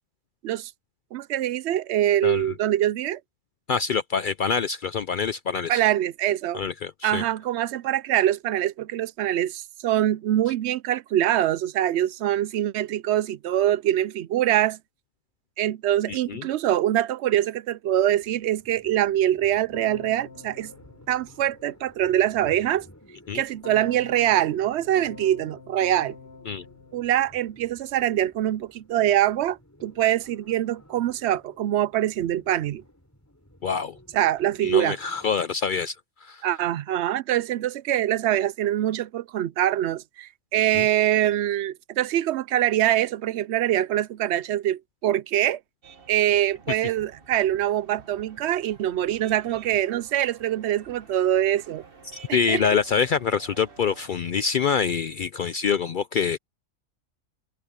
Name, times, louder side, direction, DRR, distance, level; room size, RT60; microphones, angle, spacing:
voice 1, 1.1-3.2 5.7-6.6 7.0-14.8 15.6-20.7 21.1-22.9 23.3-26.2 26.9-32.8 34.1-35.0 36.4-45.6 46.1-51.8 52.3-52.6, right 12 dB, 65° right, 0.7 m, -24 dB
voice 2, 3.7-5.8 6.5-7.2 16.1-16.4 23.3-23.4 26.5-26.6 33.6-34.0 34.6-36.0 36.2-36.4 40.7-40.8 52.3-56.4, left 6 dB, 70° left, 0.4 m, -25 dB
sound 1, 18.2-35.3, equal, 10° left, 5.6 m, -54 dB
Keyboard (musical), 19.7-22.1 23.6-27.9, left 3 dB, 45° left, 1.7 m, -46 dB
sound 2, 45.8-54.2, right 5 dB, 40° right, 1.8 m, -49 dB
omnidirectional pair, 1.4 m